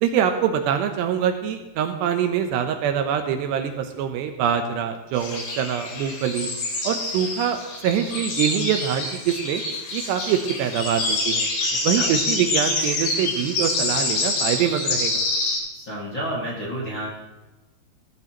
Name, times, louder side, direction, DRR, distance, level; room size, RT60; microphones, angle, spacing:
voice 1, 0.0-6.5 6.8-9.6 9.9-11.5 11.8-15.2, right 9 dB, 80° right, 6 dB, 2.8 m, -24 dB
sound 1, 5.1-15.6, left 2 dB, 85° left, 5.7 m, -26 dB
voice 2, 15.7-17.1, right 1 dB, 40° left, -6 dB, 1.9 m, -30 dB
18.0 x 13.5 x 3.0 m, 1.1 s
omnidirectional pair, 5.3 m